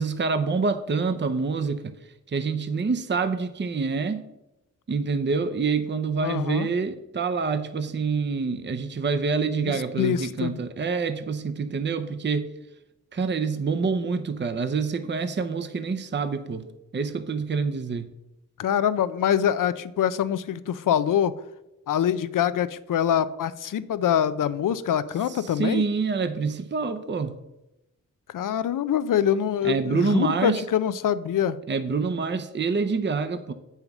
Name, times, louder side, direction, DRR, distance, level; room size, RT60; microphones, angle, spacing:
voice 1, 0.0-1.9 2.3-4.2 4.9-12.5 13.1-16.7 16.9-18.1 25.5-27.3 29.6-30.6 31.7-33.5, right 4 dB, 35° right, 10 dB, 0.6 m, -26 dB
voice 2, 6.2-6.7 9.6-10.5 18.6-21.3 21.9-25.8 28.3-31.6, left 9 dB, 90° left, 15 dB, 0.5 m, -24 dB
7.9 x 5.7 x 5.9 m, 0.93 s
cardioid pair, 65°, 31 cm